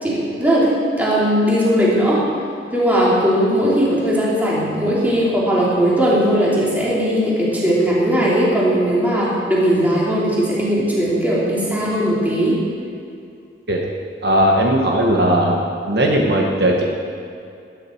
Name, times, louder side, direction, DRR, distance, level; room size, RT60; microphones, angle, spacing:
voice 1, 0.0-2.2 2.7-12.5, equal, 10° right, -7 dB, 3.1 m, -18 dB
voice 2, 14.2-15.6 15.9-16.8, right 1 dB, 65° right, 0 dB, 1.4 m, -17 dB
20.0 x 10.5 x 4.6 m, 2.4 s
head